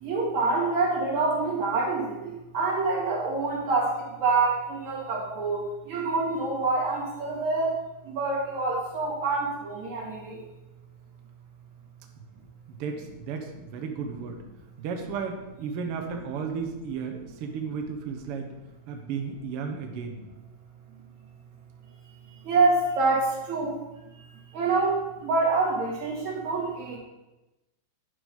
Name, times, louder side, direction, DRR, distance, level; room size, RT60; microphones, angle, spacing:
voice 1, 0.0-2.2 2.5-3.9 4.2-7.7 8.2-10.4 22.4-23.8 24.5-25.0 25.2-27.0, right 3 dB, 55° right, -4 dB, 3.5 m, -26 dB
voice 2, 12.7-14.4 14.8-18.5 18.9-20.2, right 5 dB, 85° right, 4 dB, 1.3 m, -34 dB
10.5 x 5.3 x 5.4 m, 1.0 s
omnidirectional pair, 4.0 m